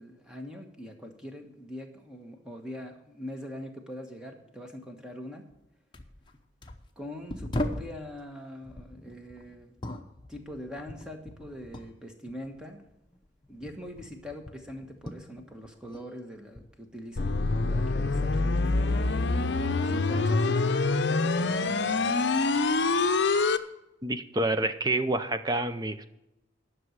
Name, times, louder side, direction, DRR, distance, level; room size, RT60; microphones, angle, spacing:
voice 1, 0.0-5.4 7.0-9.7 10.3-12.8 13.5-17.4 17.7-18.6 18.9-19.2 19.8-20.8 21.0-22.0, left 1 dB, 5° right, 3 dB, 1.3 m, -43 dB
sound 1, 5.5-5.6 5.9-8.0 8.6-12.0 12.3-16.1 16.4-18.7 19.1-19.9 20.6-20.8, left 1 dB, 25° left, 0.8 m, -40 dB
sound 2, 17.1-23.6, left 3 dB, 60° left, 0.6 m, -25 dB
voice 2, 24.0-26.0, right 2 dB, 20° right, 10 dB, 0.6 m, -28 dB
11.0 x 6.1 x 8.0 m, 0.92 s
head